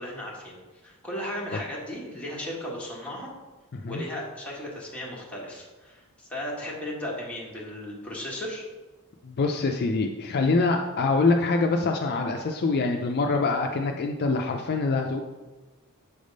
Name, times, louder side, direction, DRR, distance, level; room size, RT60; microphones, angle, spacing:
voice 1, 0.0-3.3 3.9-8.7, left 1 dB, 5° left, -5 dB, 1.5 m, -36 dB
voice 2, 3.7-4.0 9.2-15.2, left 3 dB, 45° left, 3 dB, 0.4 m, -25 dB
7.1 x 3.4 x 5.2 m, 1.2 s
head